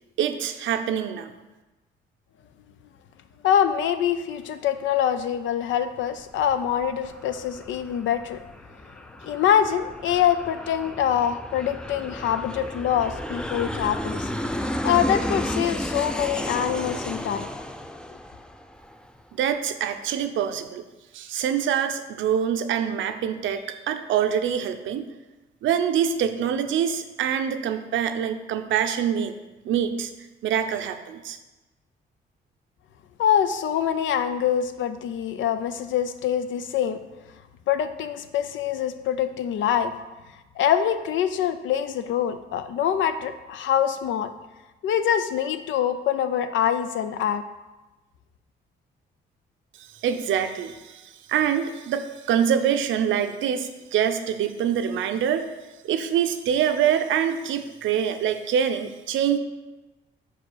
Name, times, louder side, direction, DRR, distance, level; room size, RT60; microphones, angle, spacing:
voice 1, 0.2-1.3 19.3-20.8 21.1-25.1 25.6-29.4 29.6-30.1 30.4-31.4 49.8-55.5 55.8-59.4, right 8 dB, 75° right, 8 dB, 0.6 m, -25 dB
voice 2, 3.4-8.4 9.2-14.3 14.8-17.5 33.2-37.0 37.7-39.9 40.6-44.3 44.8-47.4, left 9 dB, 75° left, 10 dB, 0.6 m, -24 dB
Aircraft, 6.0-19.2, equal, 5° left, 0.4 m, -33 dB
5.0 x 4.9 x 6.2 m, 1.1 s
cardioid pair, 90°, 20 cm